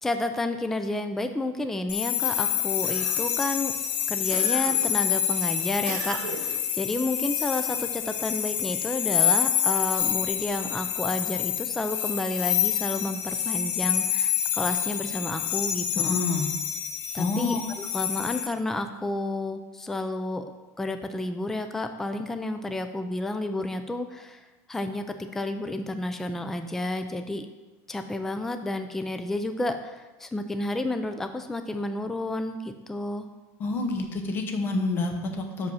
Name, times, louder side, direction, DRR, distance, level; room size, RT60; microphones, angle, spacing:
voice 1, 0.0-3.7 4.1-16.2 17.1-20.4 20.8-24.4 24.7-27.5 27.9-33.3, left 2 dB, 5° left, 7 dB, 0.3 m, -31 dB
sound 1, 1.9-18.5, left 9 dB, 65° left, 0.7 m, -27 dB
sound 2, 2.2-3.4 4.3-5.0 5.8-6.7, right 6 dB, 55° right, 0.7 m, -38 dB
voice 2, 16.0-16.5 17.2-17.6 33.6-35.7, left 3 dB, 25° left, 4 dB, 0.8 m, -28 dB
6.1 x 5.1 x 5.5 m, 1.2 s
cardioid pair, 165°, 8 cm